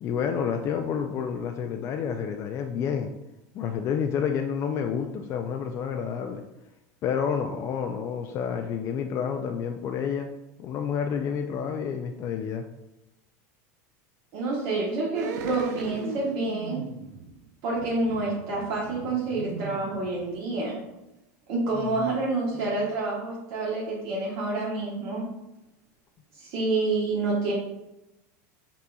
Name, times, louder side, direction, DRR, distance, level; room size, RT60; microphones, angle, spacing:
voice 1, 0.0-3.1 3.5-6.4 7.0-10.3 10.6-12.6 21.7-22.1, left 7 dB, 35° left, 4 dB, 0.3 m, -29 dB
voice 2, 14.3-16.8 17.6-20.8 21.5-25.2 26.4-27.5, right 3 dB, 55° right, -5 dB, 1.1 m, -28 dB
sound 1, 15.1-20.6 20.9-21.0, right 6 dB, 85° right, 0.5 m, -37 dB
5.6 x 3.9 x 2.3 m, 0.93 s
supercardioid pair, 145°, 9 cm